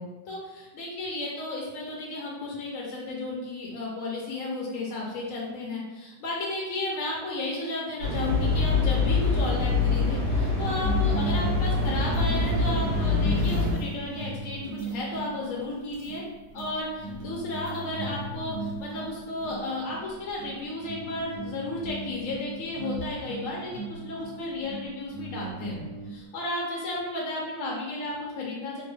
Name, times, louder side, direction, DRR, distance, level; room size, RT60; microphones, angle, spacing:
voice 1, 0.0-16.2 16.5-28.8, left 2 dB, 60° left, -4 dB, 1.0 m, -33 dB
sound 1, 8.0-13.7, left 3 dB, 60° right, 1.4 m, -24 dB
sound 2, 10.8-26.2, right 3 dB, 80° right, 1.6 m, -38 dB
3.6 x 2.1 x 3.3 m, 1.1 s
omnidirectional pair, 1.8 m